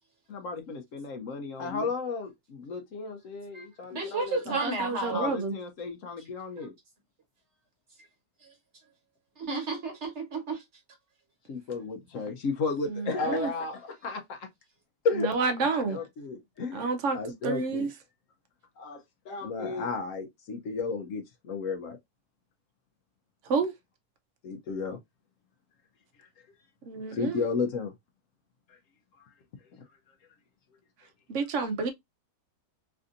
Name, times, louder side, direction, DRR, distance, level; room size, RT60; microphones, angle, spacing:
voice 1, 0.3-4.6 5.1-6.7 11.5-14.5 15.0-15.3 15.9-17.9 18.8-19.0 19.3-22.0 24.4-25.0 26.2-26.3 27.1-27.9 28.7-28.8, left 4 dB, 65° left, 0.9 m, -33 dB
voice 2, 3.9-5.3 9.4-10.6, right 3 dB, 45° right, 1.4 m, -32 dB
voice 3, 4.5-5.5 12.9-13.5 15.1-16.0 16.7-17.2 17.4-17.9 23.5-23.7 26.9-27.4 31.3-31.9, right 4 dB, 65° right, 0.8 m, -29 dB
3.3 x 2.5 x 2.5 m
omnidirectional pair, 1.7 m